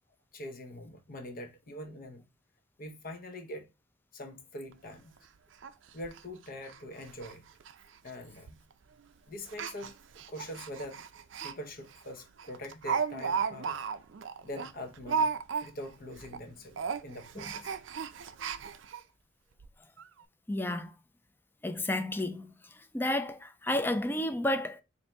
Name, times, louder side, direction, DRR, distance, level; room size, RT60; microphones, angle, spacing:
voice 1, 0.3-2.2 2.8-3.7 4.1-5.2 5.9-7.5 8.0-8.6 9.3-9.9 10.3-11.0 11.4-13.8 14.4-17.8 18.1-18.2, left 1 dB, 50° left, 0.7 m, -43 dB
Speech, 4.7-4.8 5.2-5.3 5.6-5.7 6.0-6.2 6.6-6.8 7.1-7.3 7.6-7.7 8.5-8.7 9.5-11.5 11.9-12.0 12.4-16.0 16.2-16.4 16.7-19.0 19.6-19.7 20.0-20.1, right 6 dB, 70° right, 0.4 m, -35 dB
voice 2, 20.5-20.9 21.6-22.5 22.9-24.8, left 1 dB, 10° left, 0.4 m, -31 dB
4.2 x 2.6 x 3.3 m
head